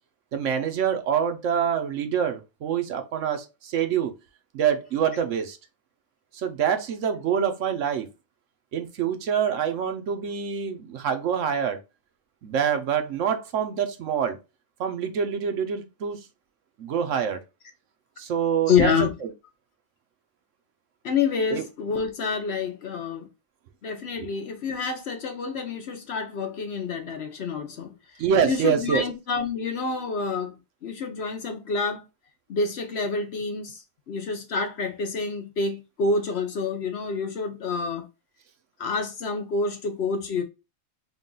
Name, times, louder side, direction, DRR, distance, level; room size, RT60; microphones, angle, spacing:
voice 1, 0.3-4.1 4.5-5.6 6.3-8.1 8.7-11.8 12.4-14.4 14.8-16.2 16.8-17.4 18.2-19.3 21.5-21.6 24.2-24.3 28.2-29.0, right 8 dB, 70° right, 1.0 m, -26 dB
voice 2, 18.7-19.1 21.0-23.3 23.8-30.6 30.8-32.0 32.5-38.1 38.8-40.4, left 5 dB, 60° left, 0.8 m, -28 dB
3.7 x 2.3 x 3.7 m
omnidirectional pair, 1.4 m